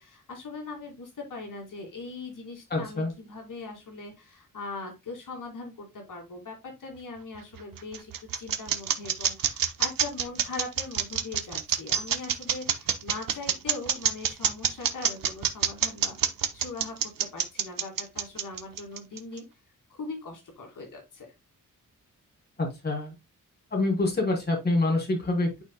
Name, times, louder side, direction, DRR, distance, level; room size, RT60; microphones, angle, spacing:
voice 1, 0.0-19.4 19.9-21.3, left 3 dB, 70° left, 2 dB, 2.3 m, -40 dB
voice 2, 2.7-3.1 22.6-23.1 23.7-25.6, left 2 dB, 30° left, -1 dB, 3.0 m, -26 dB
sound 1, 7.4-19.4, right 8 dB, 90° right, 1.0 m, -26 dB
11.5 x 4.3 x 2.2 m, 0.22 s
wide cardioid pair, 165°, 33 cm